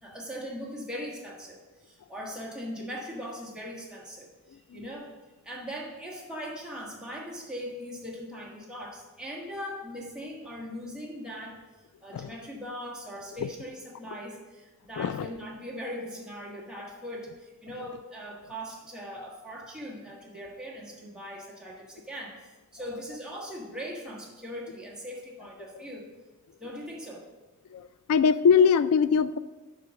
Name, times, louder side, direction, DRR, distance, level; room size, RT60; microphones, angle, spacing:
voice 1, 0.0-5.1 5.4-11.6 12.0-26.1 26.6-27.3, equal, 5° right, -3 dB, 1.4 m, -40 dB
voice 2, 15.0-15.3 27.7-27.8 28.1-29.4, left 6 dB, 80° left, 16 dB, 0.3 m, -21 dB
9.8 x 3.9 x 6.4 m, 1.2 s
head